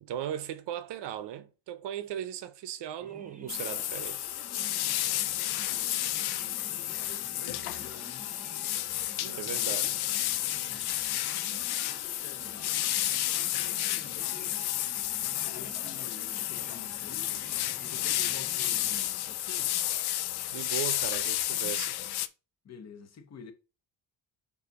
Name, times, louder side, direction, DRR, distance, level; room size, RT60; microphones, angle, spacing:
voice 1, 0.0-4.3 9.2-9.9 20.5-22.0, right 10 dB, 65° right, 0.8 m, -37 dB
sound 1, 3.0-19.6, right 3 dB, 15° right, 0.7 m, -51 dB
sound 2, 3.5-22.3, left 14 dB, 55° left, 0.5 m, -31 dB
voice 2, 5.0-8.3 9.0-9.8 10.5-11.2 11.8-12.9 13.3-14.6 15.5-17.4 17.8-19.7 22.6-23.5, left 6 dB, 35° left, 0.9 m, -50 dB
6.9 x 2.8 x 5.2 m
cardioid pair, 175°, 46 cm